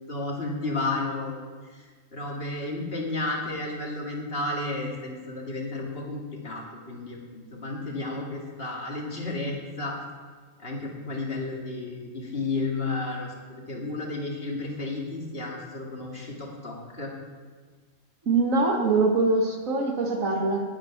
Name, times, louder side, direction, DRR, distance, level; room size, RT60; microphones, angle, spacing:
voice 1, 0.1-10.0 10.6-17.1, left 2 dB, 50° left, -2 dB, 2.6 m, -32 dB
voice 2, 18.3-20.6, right 3 dB, 80° right, 2 dB, 2.2 m, -23 dB
18.5 x 7.4 x 6.0 m, 1.5 s
omnidirectional pair, 1.4 m